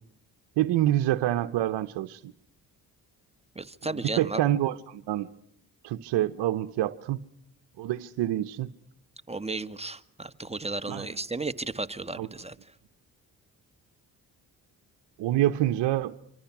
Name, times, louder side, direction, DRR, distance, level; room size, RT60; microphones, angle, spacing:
voice 1, 0.6-2.3 3.8-5.3 5.8-7.2 7.8-8.7 10.9-11.1 12.1-12.3 15.2-16.1, right 13 dB, 80° right, 1.0 m, -27 dB
voice 2, 3.5-4.4 9.3-12.5, right 2 dB, 15° right, 1.7 m, -34 dB
26.5 x 26.0 x 6.0 m
supercardioid pair, 55°, 41 cm